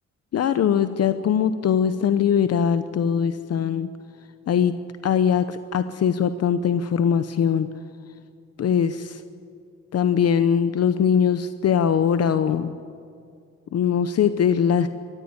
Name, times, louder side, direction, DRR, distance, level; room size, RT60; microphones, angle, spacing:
voice 1, 0.3-3.9 4.5-4.7 5.0-7.7 8.6-9.2 9.9-12.7 13.7-14.9, left 8 dB, 55° left, 11 dB, 0.8 m, -21 dB
21.5 x 14.0 x 9.5 m, 2.3 s
cardioid pair, 90°, 30 cm